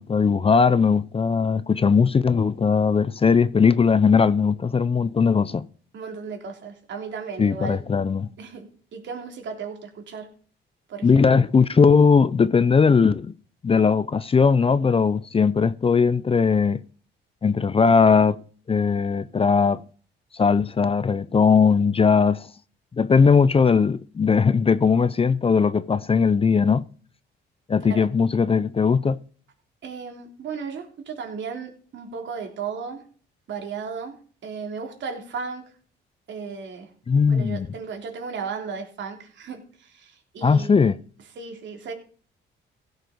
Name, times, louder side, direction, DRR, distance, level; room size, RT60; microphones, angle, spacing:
voice 1, 0.0-5.7 7.4-8.3 11.0-13.3 13.6-16.8 17.4-18.4 18.7-19.8 20.3-22.5 23.0-26.8 27.7-29.2 37.1-37.7 40.4-40.9, left 5 dB, 30° left, 0.6 m, -19 dB
voice 2, 5.9-7.8 8.4-10.3 10.9-11.4 27.8-28.0 29.8-33.0 33.5-34.2 34.4-35.6 36.3-36.9 37.3-40.9 41.4-41.9, right 5 dB, 70° right, 3.5 m, -35 dB
16.0 x 6.7 x 5.1 m
cardioid pair, 90°, 20 cm